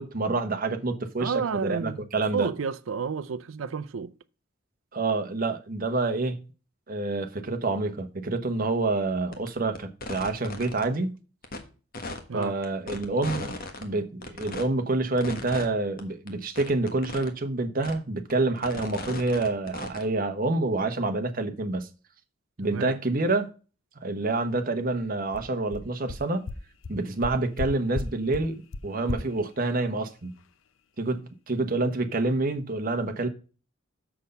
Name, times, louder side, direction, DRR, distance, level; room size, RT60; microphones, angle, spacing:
voice 1, 0.0-2.5 4.9-6.4 6.9-11.2 12.3-21.9 22.6-23.5 24.0-26.4 26.9-30.3 31.0-33.3, right 2 dB, 45° right, 1.1 m, -27 dB
voice 2, 1.2-4.1 12.3-12.5 22.6-22.9, right 6 dB, 90° right, 0.5 m, -31 dB
sound 1, 9.3-9.5 9.7-10.8 11.4-11.6 11.9-13.8 14.2-14.6 15.2-15.7 16.0-16.1 16.3-16.4 16.6-17.3 17.8-17.9 18.3-20.1, left 2 dB, 50° left, 1.4 m, -36 dB
sound 2, 25.0-25.1 25.3-25.4 25.7-25.8 26.1-26.2 26.5-26.6 26.8-26.9 27.2-27.7 27.9-28.1 28.3-28.4 28.7-28.8 29.1-29.2, left 3 dB, 75° left, 0.6 m, -32 dB
6.9 x 6.3 x 5.3 m
head